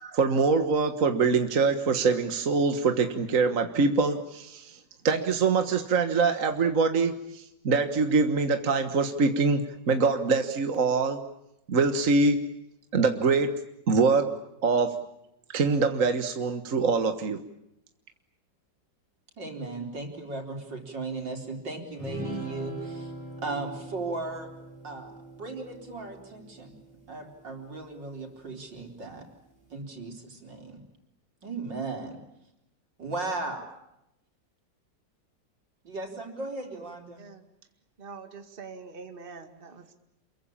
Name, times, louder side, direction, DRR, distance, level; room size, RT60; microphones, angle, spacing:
voice 1, 0.0-4.8 5.0-11.2 11.7-12.4 12.9-13.5 13.9-14.3 14.6-14.9 15.5-17.4, right 4 dB, 50° right, 7 dB, 1.8 m, -24 dB
voice 2, 19.4-23.1 23.4-24.5 24.8-25.1 25.4-26.8 27.1-29.3 29.7-30.8 31.4-32.2 33.0-33.7 35.8-37.2, right 3 dB, 80° right, 3 dB, 4.9 m, -36 dB
sound 1, 22.0-27.6, right 1 dB, 10° left, 7.8 m, -41 dB
voice 3, 38.0-39.9, right 5 dB, 30° right, 7 dB, 2.2 m, -44 dB
28.5 x 22.5 x 8.7 m, 0.84 s
omnidirectional pair, 1.9 m